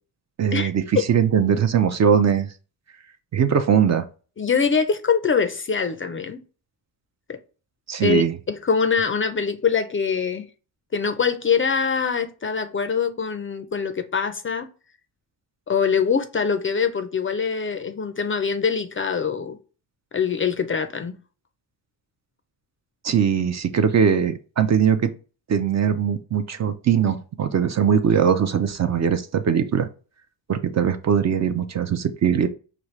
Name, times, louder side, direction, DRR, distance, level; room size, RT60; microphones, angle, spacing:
voice 1, 0.4-2.5 3.3-4.1 7.9-8.3 23.0-25.1 25.5-29.9 30.5-32.5, right 7 dB, 40° right, 0.4 m, -20 dB
voice 2, 4.4-6.4 7.3-7.4 8.0-10.5 10.9-14.7 15.7-19.6 20.1-21.2, left 6 dB, 30° left, 0.4 m, -23 dB
5.1 x 2.4 x 3.1 m
cardioid pair, 65°, 43 cm